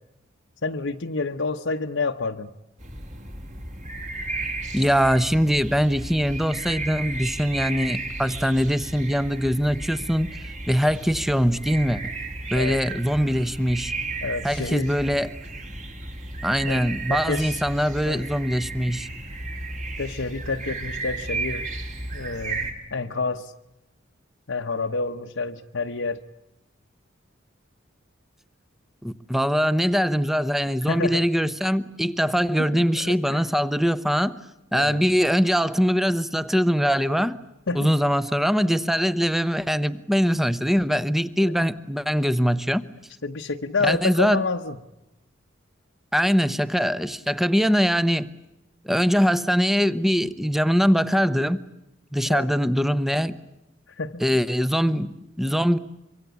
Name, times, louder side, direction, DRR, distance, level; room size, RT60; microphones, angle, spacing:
voice 1, 0.6-2.5 12.5-12.8 14.2-14.9 16.6-17.6 18.0-18.2 20.0-21.7 22.1-23.5 24.5-26.2 30.9-31.2 32.7-33.4 34.7-35.0 37.7-37.9 41.4-41.5 43.2-44.8 52.3-52.5 54.0-54.4, left 4 dB, 70° left, 3 dB, 1.1 m, -29 dB
sound 1, 2.8-22.7, right 3 dB, 40° right, 4.2 m, -34 dB
voice 2, 4.7-10.3 10.7-12.1 12.5-13.9 14.4-15.3 16.4-19.1 29.0-34.4 34.7-37.4 37.7-42.8 43.8-44.4 46.1-48.3 48.8-51.6 52.1-53.4 54.2-55.8, equal, ahead, 14 dB, 0.9 m, -22 dB
25.5 x 24.0 x 8.3 m, 0.92 s
head